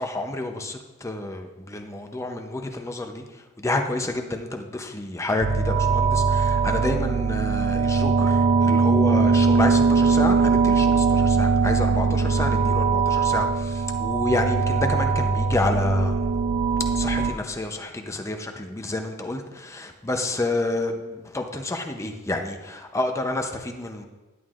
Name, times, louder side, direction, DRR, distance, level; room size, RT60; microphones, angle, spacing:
voice 1, 0.0-16.2 16.9-24.1, left 2 dB, 15° left, 4 dB, 0.6 m, -29 dB
sound 1, 5.4-17.3, right 4 dB, 55° right, 0.5 m, -21 dB
10.5 x 9.4 x 2.5 m, 1.1 s
head